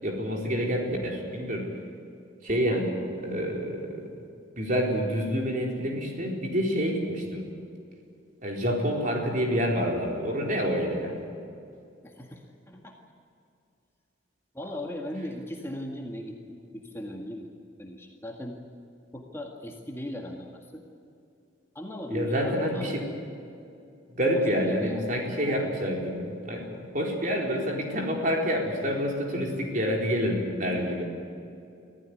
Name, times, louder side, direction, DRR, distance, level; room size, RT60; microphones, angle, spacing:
voice 1, 0.0-1.7 2.4-4.1 4.6-7.4 8.4-11.2 22.1-23.0 24.1-31.1, equal, 40° right, 0 dB, 4.3 m, -28 dB
voice 2, 12.0-12.9 14.5-17.5 17.8-18.6 19.1-20.9 21.7-22.9 24.3-25.2 25.5-25.7, left 1 dB, 15° left, 0 dB, 1.9 m, -38 dB
24.5 x 15.5 x 9.7 m, 2.6 s
head